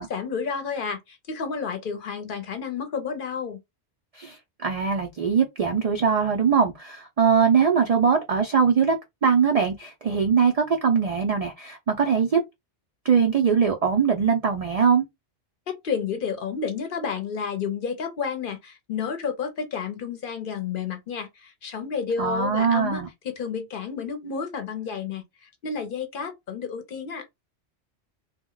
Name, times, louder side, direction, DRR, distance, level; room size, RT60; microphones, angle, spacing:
voice 1, 0.0-3.6 15.7-27.3, left 6 dB, 55° left, 0.7 m, -31 dB
voice 2, 4.1-9.0 9.2-12.4 13.0-15.0 22.2-23.1, right 6 dB, 70° right, 0.3 m, -21 dB
2.2 x 2.1 x 3.7 m
omnidirectional pair, 1.2 m